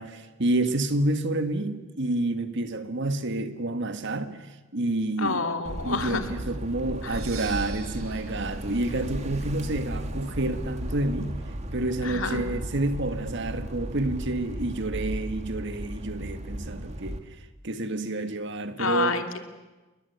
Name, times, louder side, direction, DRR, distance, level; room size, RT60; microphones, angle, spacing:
voice 1, 0.0-5.4 5.8-11.4 11.7-17.2 17.6-19.2, right 2 dB, 55° right, 1.7 m, -29 dB
voice 2, 5.2-6.2 7.0-7.2 12.0-12.4 18.8-19.4, left 3 dB, 65° left, 2.7 m, -28 dB
sound 1, 5.6-17.2, right 1 dB, 30° right, 2.2 m, -35 dB
Percussion, 7.0-10.8, right 7 dB, 90° right, 2.7 m, -47 dB
29.0 x 21.5 x 8.3 m
head